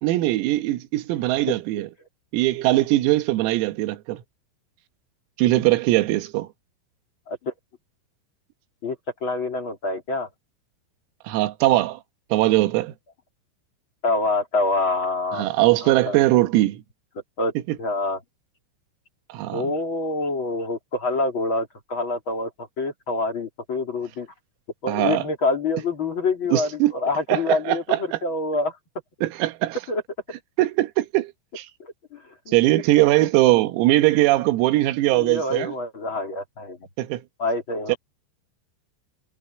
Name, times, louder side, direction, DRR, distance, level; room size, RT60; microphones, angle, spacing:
voice 1, 0.0-1.9 2.3-4.2 5.4-6.5 11.3-12.0 12.3-12.9 15.3-16.8 17.7-17.8 19.3-19.7 24.9-25.2 26.5-26.9 27.3-28.2 29.2-29.8 30.6-31.7 32.5-35.7 37.0-37.2 37.9-38.0, right 17 dB, 90° right, 4.0 m, -21 dB
voice 2, 8.8-10.3 14.0-16.2 17.4-18.2 19.5-24.3 24.8-28.8 29.9-30.0 31.8-32.5 35.1-36.8 37.4-37.9, left 2 dB, 30° left, 2.7 m, -26 dB
omnidirectional pair, 5.9 m